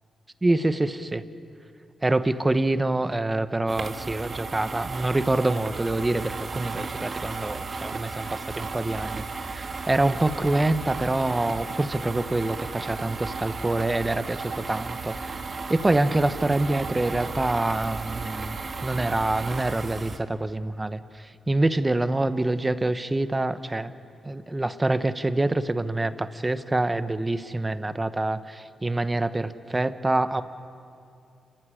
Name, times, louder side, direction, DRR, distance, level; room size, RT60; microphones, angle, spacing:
voice 1, 0.4-1.2 2.0-15.2 15.7-23.9 24.2-30.4, right 2 dB, 20° right, 11 dB, 1.0 m, -26 dB
sound 1, 3.7-20.2, right 4 dB, 45° right, 1.8 m, -35 dB
29.0 x 15.0 x 10.0 m, 2.5 s
cardioid pair, 80°, 0 cm